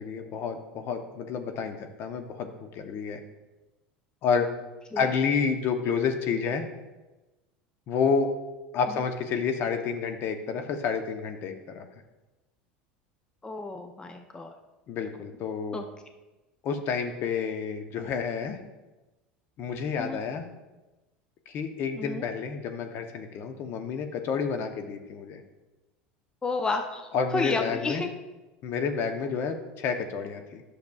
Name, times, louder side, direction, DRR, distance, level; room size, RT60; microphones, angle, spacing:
voice 1, 0.0-3.2 4.2-4.5 5.0-6.6 7.9-8.3 8.7-11.9 14.9-15.8 16.6-18.6 19.6-20.5 21.5-25.4 27.1-28.0 28.6-30.6, left 6 dB, 50° left, 6 dB, 0.8 m, -29 dB
voice 2, 13.4-14.5 15.7-15.8 20.0-20.2 22.0-22.2 26.4-28.1, left 3 dB, 15° left, 5 dB, 0.6 m, -31 dB
10.5 x 6.5 x 2.4 m, 1.1 s
hypercardioid pair, 95°, 5 cm